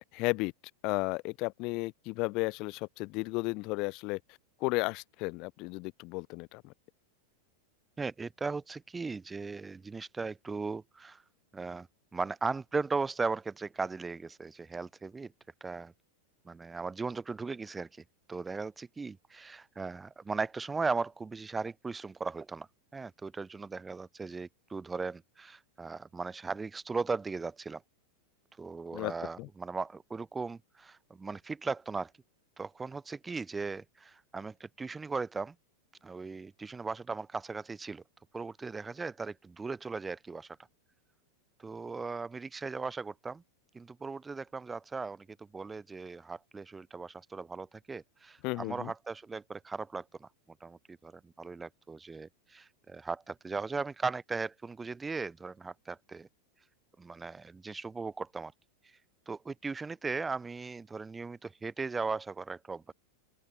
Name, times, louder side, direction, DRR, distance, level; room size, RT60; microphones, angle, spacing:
voice 1, 0.1-0.5 0.8-4.2 4.6-6.7 28.9-29.1 29.4-29.5 48.4-48.9, left 25 dB, 40° left, 1.7 m, -33 dB
voice 2, 8.0-11.2 11.5-11.9 12.1-15.3 15.6-15.9 16.5-22.7 22.9-27.8 28.6-32.1 32.6-35.5 36.0-38.0 38.3-40.6 41.6-43.4 43.7-50.3 50.6-56.3 57.0-58.5 58.8-59.0 59.3-62.9, right 4 dB, 10° right, 0.7 m, -37 dB
open air
figure-of-eight pair, 90°, 0 cm